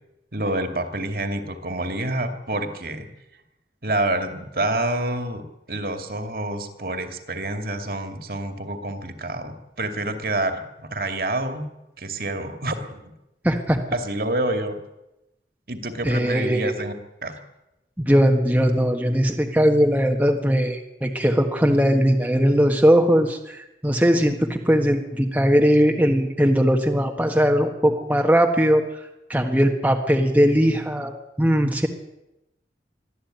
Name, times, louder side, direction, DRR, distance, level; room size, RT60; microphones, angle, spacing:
voice 1, 0.3-3.1 3.8-11.7 12.0-13.1 13.9-14.8 15.7-16.9 17.2-17.4, right 1 dB, 55° right, 6 dB, 2.5 m, -28 dB
voice 2, 13.4-13.8 16.0-16.7 18.0-28.8 29.3-31.9, equal, 10° right, 2 dB, 1.4 m, -19 dB
23.0 x 14.0 x 9.2 m, 0.92 s
head